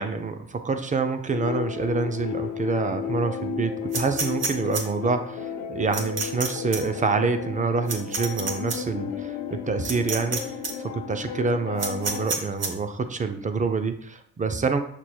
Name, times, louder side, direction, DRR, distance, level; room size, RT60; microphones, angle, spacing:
voice 1, 0.0-10.6 10.8-14.8, right 4 dB, 25° right, 8 dB, 0.4 m, -27 dB
sound 1, 1.3-12.3, left 8 dB, 75° left, 0.5 m, -33 dB
sound 2, 3.9-4.8 5.9-6.5 6.7-6.8 7.9-8.8 9.8-10.4 10.6-10.7 11.8-12.7, right 4 dB, 50° right, 1.0 m, -28 dB
5.9 x 2.2 x 2.2 m, 0.65 s
hypercardioid pair, 50°, 33 cm